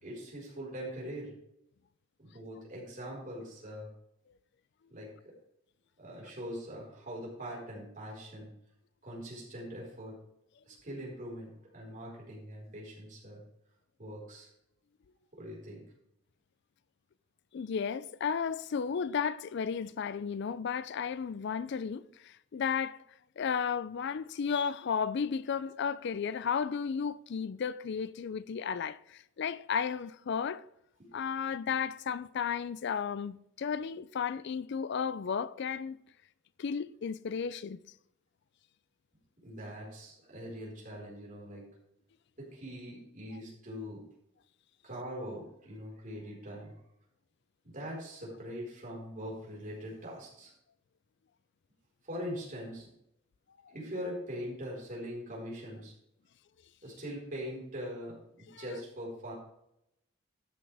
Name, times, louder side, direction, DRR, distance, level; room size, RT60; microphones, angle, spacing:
voice 1, 0.0-1.3 2.2-3.9 4.9-5.3 6.0-8.5 9.0-10.2 10.7-13.4 14.0-14.5 15.3-15.8 31.0-31.1 39.4-41.6 42.4-44.0 44.8-46.7 47.6-50.5 52.0-52.9 53.7-55.9 56.8-59.3, equal, 45° right, 4.5 m, -42 dB
voice 2, 17.5-23.0 23.4-30.6 31.1-36.0 36.6-37.8 58.5-58.6, left 6 dB, 60° left, 0.4 m, -34 dB
13.0 x 8.5 x 3.4 m
head